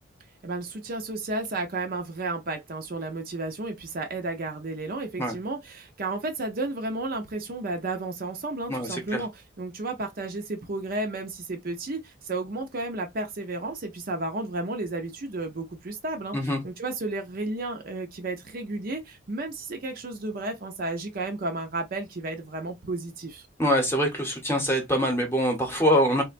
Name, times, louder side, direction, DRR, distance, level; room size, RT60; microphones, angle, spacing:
voice 1, 0.4-23.5, right 2 dB, 45° right, 0.5 m, -32 dB
voice 2, 8.7-9.2 16.3-16.6 23.6-26.2, equal, 10° left, 0.8 m, -24 dB
3.6 x 2.1 x 2.4 m
head